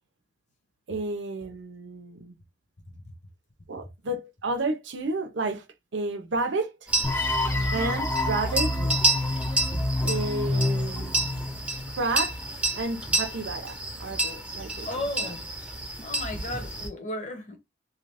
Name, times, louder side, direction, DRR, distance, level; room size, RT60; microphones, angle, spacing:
voice 1, 0.9-2.4 3.7-5.6 5.9-6.9 7.7-8.8 10.0-11.7 12.0-12.5 12.7-15.3, right 2 dB, 90° right, 0.7 m, -31 dB
sound 1, 6.9-16.9, right 2 dB, 5° right, 0.7 m, -30 dB
sound 2, 7.0-12.1, left 1 dB, 10° left, 0.3 m, -28 dB
voice 2, 14.8-15.4 16.0-17.6, left 1 dB, 40° left, 1.0 m, -34 dB
2.9 x 2.5 x 3.3 m
head